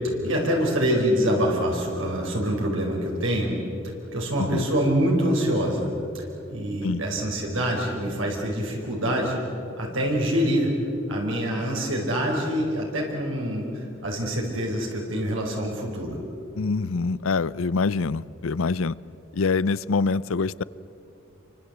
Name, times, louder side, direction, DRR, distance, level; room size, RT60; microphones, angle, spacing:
voice 1, 0.2-3.6 4.1-6.2 6.5-9.4 9.8-10.8 11.1-16.2, equal, 70° right, -1 dB, 4.6 m, -25 dB
voice 2, 16.5-19.0 19.3-20.6, left 4 dB, 80° left, 20 dB, 0.6 m, -25 dB
28.0 x 24.0 x 8.0 m, 2.9 s
head